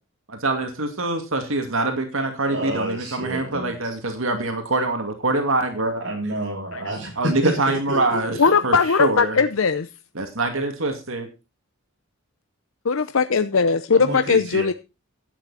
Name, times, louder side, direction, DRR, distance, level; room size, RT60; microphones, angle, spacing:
voice 1, 0.3-6.0 7.2-9.4 10.2-11.3, right 2 dB, 75° right, 2.3 m, -24 dB
voice 2, 2.5-3.7 6.0-8.2 8.4-8.5 13.9-14.7, right 1 dB, 60° right, 6.1 m, -29 dB
voice 3, 8.4-9.9 12.8-14.7, left 5 dB, 75° left, 0.7 m, -19 dB
12.0 x 9.5 x 4.2 m
head